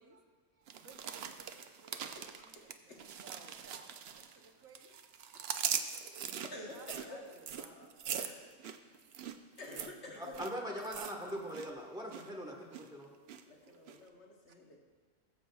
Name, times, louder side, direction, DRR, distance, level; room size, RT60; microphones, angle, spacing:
voice 1, 0.0-2.5 2.8-2.9 3.2-3.9 4.2-4.9 5.8-5.9 6.3-7.3 13.6-13.8, right 4 dB, 85° right, 3 dB, 1.4 m, -58 dB
sound 1, 0.7-4.5 4.7-11.7 11.9-12.3 12.7-13.4 13.9-14.0, right 8 dB, 60° right, 0.7 m, -41 dB
voice 2, 2.1-3.1 5.6-9.0 9.6-10.8 11.1-11.3 13.5-14.8, left 2 dB, 60° left, 0 dB, 1.4 m, -51 dB
voice 3, 10.4-13.1, equal, 5° right, -2 dB, 1.1 m, -41 dB
18.5 x 7.4 x 2.3 m, 1.5 s
omnidirectional pair, 1.4 m